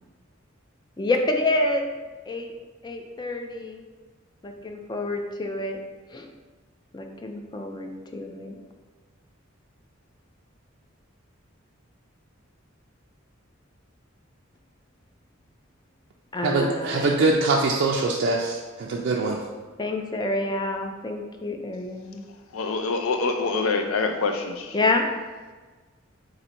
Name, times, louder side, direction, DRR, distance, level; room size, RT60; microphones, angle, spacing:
voice 1, 1.0-1.9 2.3-2.5 2.8-3.8 4.4-5.8 6.1-6.3 6.9-8.6 16.3-17.3 19.8-22.2 24.7-25.1, left 2 dB, 20° left, 0.4 m, -28 dB
voice 2, 16.4-19.4, right 3 dB, 55° right, 0.3 m, -23 dB
voice 3, 22.5-24.8, left 4 dB, 90° left, 0.5 m, -25 dB
4.0 x 2.6 x 4.3 m
head